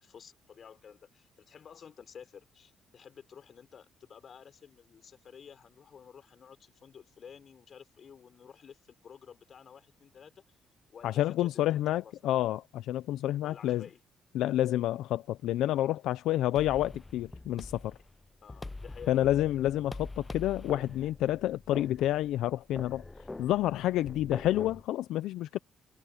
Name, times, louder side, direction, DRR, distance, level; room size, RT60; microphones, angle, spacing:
voice 1, 0.0-10.4 10.9-12.3 13.4-14.0 18.4-19.3, left 7 dB, 55° left, 5.5 m, -52 dB
voice 2, 11.0-13.8 14.3-18.0 19.1-23.0 23.4-25.6, left 13 dB, 90° left, 0.5 m, -29 dB
sound 1, 16.6-24.8, left 2 dB, 20° left, 0.6 m, -44 dB
cardioid pair, 90°, 0 cm